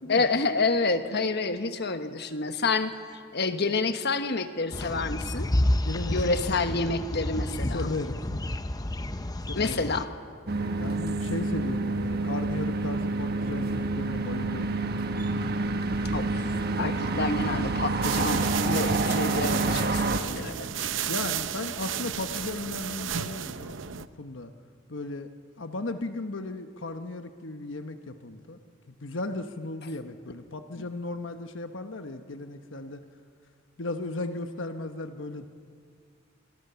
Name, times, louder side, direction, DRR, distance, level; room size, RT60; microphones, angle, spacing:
voice 1, 0.1-2.9 3.3-5.5 6.1-7.9 9.5-10.1 16.1-16.5 16.8-20.9 30.8-30.9, left 3 dB, 60° left, 8 dB, 1.3 m, -28 dB
sound 1, 4.7-10.0, left 1 dB, 20° left, 0.8 m, -30 dB
voice 2, 5.8-6.6 7.7-8.6 9.5-9.9 10.8-15.1 21.0-24.5 24.9-25.3 25.6-28.6 29.0-33.0 33.8-35.5, left 2 dB, 75° left, 7 dB, 1.2 m, -36 dB
sound 2, 10.5-20.2, right 2 dB, 55° right, 1.2 m, -28 dB
sound 3, 18.0-24.1, right 9 dB, 75° right, 0.8 m, -33 dB
27.0 x 23.0 x 7.0 m, 2.2 s
head